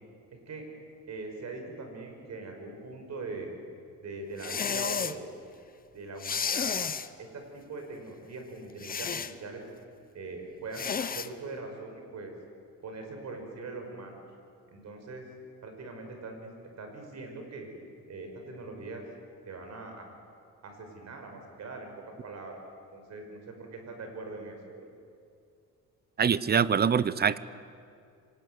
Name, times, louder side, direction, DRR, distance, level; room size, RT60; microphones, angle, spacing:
voice 1, 1.1-3.5 4.0-5.3 5.9-6.7 7.2-9.6 10.1-12.3 12.8-14.1 14.7-15.3 15.6-16.5 16.8-17.7 18.1-19.0 19.5-20.1 20.6-21.9 22.2-22.6 22.9-24.9, right 3 dB, 50° right, 4 dB, 5.7 m, -41 dB
sound 1, 4.4-5.2 6.2-7.1 8.8-9.3 10.7-11.3, left 6 dB, 25° left, 0.8 m, -31 dB
voice 2, 26.2-27.4, right 7 dB, 30° right, 17 dB, 0.7 m, -24 dB
25.5 x 19.5 x 9.4 m, 2.4 s
cardioid pair, 125°, 34 cm